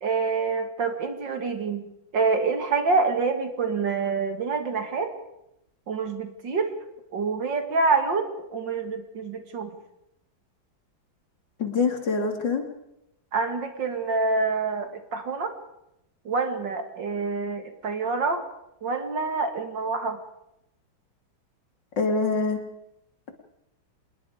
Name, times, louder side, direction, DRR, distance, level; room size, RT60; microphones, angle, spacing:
voice 1, 0.0-1.8 2.1-5.1 5.9-6.7 7.1-9.8 13.3-15.5 16.2-18.4 18.8-20.2, right 4 dB, 60° right, 6 dB, 2.8 m, -26 dB
voice 2, 11.6-12.6 22.0-22.6, left 4 dB, 60° left, 5 dB, 3.2 m, -24 dB
26.5 x 20.5 x 5.0 m, 0.85 s
omnidirectional pair, 2.2 m